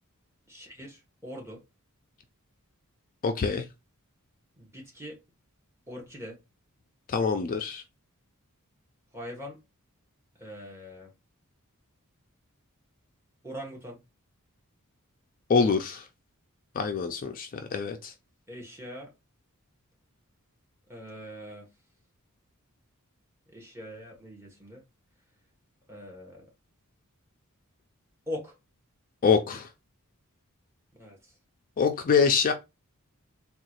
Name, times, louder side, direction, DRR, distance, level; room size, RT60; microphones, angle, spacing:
voice 1, 0.5-1.6 4.6-5.2 5.9-6.4 9.1-9.6 10.4-11.1 13.4-14.0 18.5-19.1 20.9-21.7 23.5-24.8 25.9-26.5 28.3-28.6 30.9-31.3, equal, 10° right, 1.1 m, -42 dB
voice 2, 3.2-3.7 7.1-7.8 15.5-16.1 16.7-18.1 29.2-29.7 31.8-32.5, left 5 dB, 40° left, 0.4 m, -25 dB
3.7 x 2.3 x 2.9 m
head